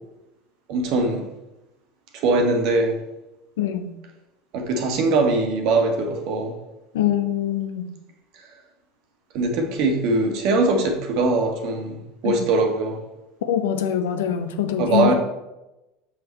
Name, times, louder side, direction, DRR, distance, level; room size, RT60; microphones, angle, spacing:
voice 1, 0.7-1.3 2.1-2.9 4.5-6.5 9.3-12.0 12.2-13.0 14.8-15.1, right 3 dB, 55° right, 3 dB, 1.5 m, -21 dB
voice 2, 3.6-3.9 6.9-7.9 12.2-12.5 13.5-15.1, left 10 dB, 70° left, 8 dB, 0.7 m, -24 dB
6.8 x 6.1 x 4.4 m, 0.96 s
figure-of-eight pair, 70°, 0 cm